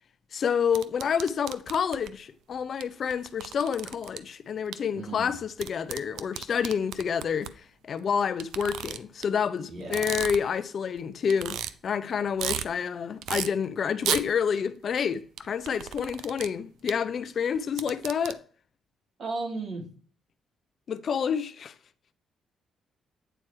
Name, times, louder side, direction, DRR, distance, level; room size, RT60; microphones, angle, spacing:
voice 1, 0.3-18.4 20.9-21.7, left 7 dB, 55° left, 0.6 m, -29 dB
sound 1, 0.7-2.1 2.8-2.9 3.1-4.2 4.7-4.8 5.6-7.5 8.4-9.2 9.8-10.6 11.0-11.1 11.3-11.7 12.1-12.7 13.2-13.5 14.0-14.2 15.4-16.5 16.9-17.0 17.6-18.3, right 11 dB, 85° right, 0.5 m, -33 dB
voice 2, 4.9-5.4 9.7-10.2 19.2-19.9, right 3 dB, 55° right, 3.1 m, -35 dB
9.0 x 4.5 x 4.6 m
cardioid pair, 90°, 0 cm